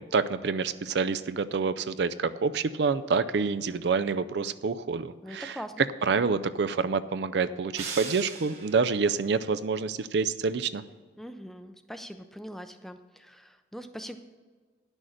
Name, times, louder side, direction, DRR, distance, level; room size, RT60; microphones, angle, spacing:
voice 1, 0.0-5.6 6.0-10.8, right 5 dB, 75° right, 13 dB, 0.4 m, -27 dB
voice 2, 5.2-5.9 11.2-14.2, equal, ahead, 9 dB, 0.4 m, -42 dB
sound 1, 7.8-9.0, right 5 dB, 35° right, 1.5 m, -38 dB
11.0 x 6.3 x 6.4 m, 1.5 s
head